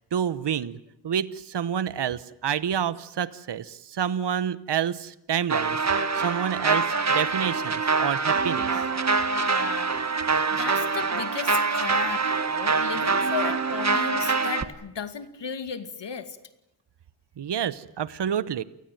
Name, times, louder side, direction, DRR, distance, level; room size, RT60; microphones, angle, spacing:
voice 1, 0.1-0.8 1.0-5.8 6.1-8.8 17.4-18.6, right 8 dB, 75° right, 16 dB, 1.0 m, -28 dB
sound 1, 5.5-14.6, right 4 dB, 40° right, 1.6 m, -25 dB
voice 2, 9.4-9.9 10.5-16.4, left 6 dB, 85° left, 10 dB, 2.4 m, -35 dB
29.0 x 19.5 x 9.2 m, 0.84 s
wide cardioid pair, 115°, 42 cm